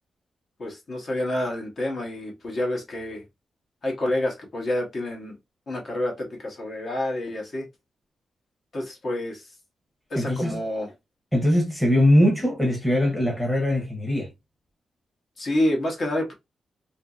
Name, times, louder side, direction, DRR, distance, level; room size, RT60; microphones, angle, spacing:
voice 1, 0.6-3.2 3.8-5.4 5.7-7.7 8.7-9.4 10.1-10.9 15.4-16.3, left 1 dB, 40° left, 0.9 m, -28 dB
voice 2, 10.2-10.6 11.3-14.3, left 1 dB, ahead, 0.9 m, -21 dB
2.7 x 2.6 x 2.3 m
wide cardioid pair, 165°, 0 cm